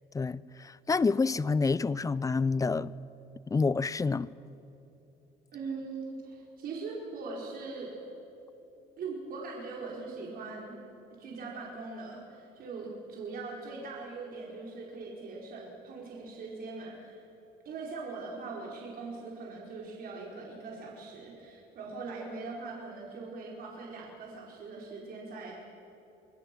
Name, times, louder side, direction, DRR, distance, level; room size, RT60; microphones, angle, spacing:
voice 1, 0.1-2.9 3.5-4.3, left 4 dB, 20° left, 0.6 m, -28 dB
voice 2, 5.5-8.1 9.0-10.8 11.2-17.2 17.6-25.5, right 3 dB, 60° right, 4.8 m, -41 dB
28.5 x 22.0 x 6.2 m
cardioid pair, 110°, 17 cm